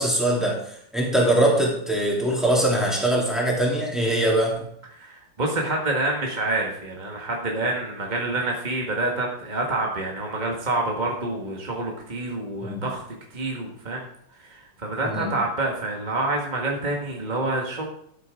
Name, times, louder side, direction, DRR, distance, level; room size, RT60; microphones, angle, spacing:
voice 1, 0.0-4.5 12.6-12.8 15.0-15.3, right 1 dB, ahead, -3 dB, 3.0 m, -22 dB
voice 2, 4.9-13.0 13.3-14.0 14.4-17.9, right 2 dB, 25° right, -1 dB, 1.6 m, -27 dB
13.5 x 8.2 x 3.7 m, 0.68 s
omnidirectional pair, 2.3 m